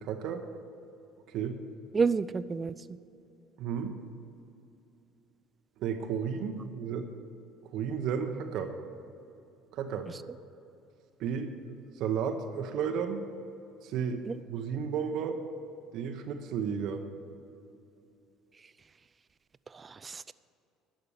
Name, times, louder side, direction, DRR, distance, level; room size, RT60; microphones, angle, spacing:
voice 1, 0.0-0.4 1.3-1.6 3.6-4.0 5.8-7.1 7.7-8.7 9.7-10.1 11.2-13.2 13.8-15.4 15.9-17.0, right 7 dB, 65° right, 5 dB, 0.9 m, -33 dB
voice 2, 1.9-2.8 10.1-10.2 14.2-14.4 19.7-20.3, right 5 dB, 30° right, 16 dB, 0.4 m, -30 dB
11.5 x 6.6 x 8.6 m, 2.7 s
hypercardioid pair, 70°, 0 cm